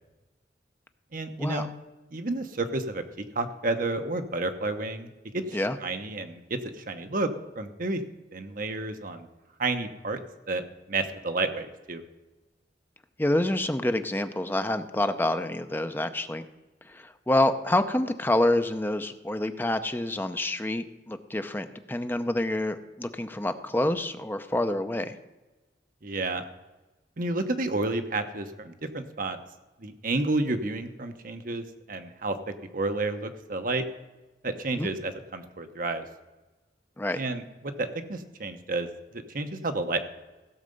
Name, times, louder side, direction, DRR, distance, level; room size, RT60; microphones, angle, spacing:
voice 1, 1.1-1.7 2.1-5.1 5.3-7.3 7.5-8.0 8.3-9.3 9.6-10.2 10.5-10.6 10.9-12.0 26.0-26.4 27.2-29.4 29.8-32.4 32.7-33.9 34.4-36.0 37.1-38.9 39.1-40.0, right 2 dB, 50° right, 7 dB, 1.0 m, -30 dB
voice 2, 13.2-16.4 16.9-25.2 34.8-34.9 37.0-37.2, left 1 dB, 10° left, 9 dB, 0.6 m, -27 dB
16.0 x 6.6 x 5.3 m, 1.1 s
head